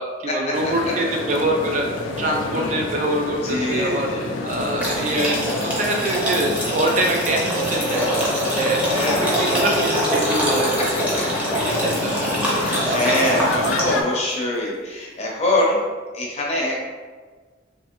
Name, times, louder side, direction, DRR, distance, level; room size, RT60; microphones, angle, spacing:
voice 1, 0.0-1.8 2.2-4.1 4.4-8.2 8.5-11.0 11.6-12.4 13.0-13.8, right 1 dB, 40° right, 1 dB, 0.3 m, -25 dB
sound 1, 0.5-14.0, left 3 dB, 90° left, 0.4 m, -29 dB
voice 2, 3.4-4.3 8.8-9.9 12.5-15.8 16.1-16.8, left 1 dB, 35° left, -3 dB, 0.7 m, -24 dB
sound 2, 4.8-14.1, equal, 10° right, 0.7 m, -24 dB
3.3 x 3.0 x 2.9 m, 1.4 s
head